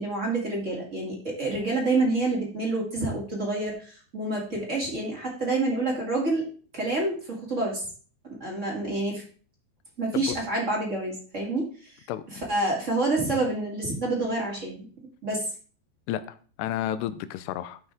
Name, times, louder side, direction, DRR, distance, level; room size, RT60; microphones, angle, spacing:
voice 1, 0.0-6.5 6.7-7.8 8.4-9.2 10.0-11.9 12.3-14.9 15.2-15.5, right 2 dB, 25° right, -2 dB, 2.0 m, -28 dB
voice 2, 16.1-17.8, left 11 dB, 80° left, 13 dB, 2.6 m, -31 dB
14.0 x 6.0 x 3.6 m, 0.41 s
omnidirectional pair, 5.2 m